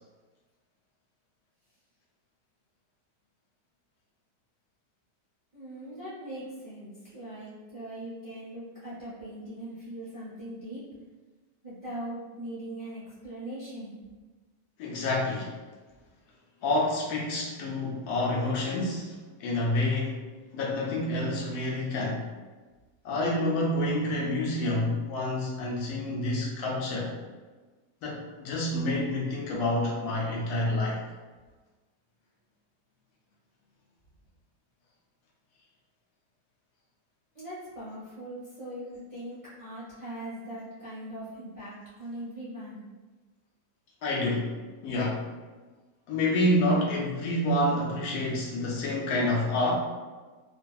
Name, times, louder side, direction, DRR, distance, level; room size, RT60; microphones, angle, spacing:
voice 1, 5.5-10.8 11.6-14.0 37.3-42.8, right 1 dB, 45° right, -11 dB, 0.4 m, -40 dB
voice 2, 14.8-15.5 16.6-20.2 20.5-22.3 23.0-27.1 28.0-31.0 44.0-44.5 44.8-45.2 46.1-49.7, left 1 dB, 75° left, -3 dB, 1.0 m, -28 dB
2.6 x 2.5 x 2.3 m, 1.3 s
omnidirectional pair, 1.8 m